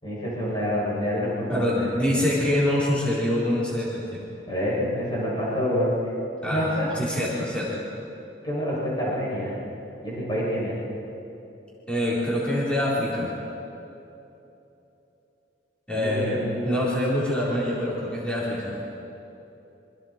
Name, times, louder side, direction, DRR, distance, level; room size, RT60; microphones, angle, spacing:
voice 1, 0.0-1.9 2.1-2.3 4.5-5.9 6.4-6.9 8.4-9.6 10.0-10.8 15.9-17.1 17.6-17.7, equal, 25° left, -8 dB, 7.1 m, -27 dB
voice 2, 1.5-4.2 6.4-6.7 6.9-7.8 11.9-13.3 15.9-18.7, left 1 dB, 5° left, -8 dB, 4.4 m, -25 dB
27.5 x 26.0 x 4.6 m, 3.0 s
head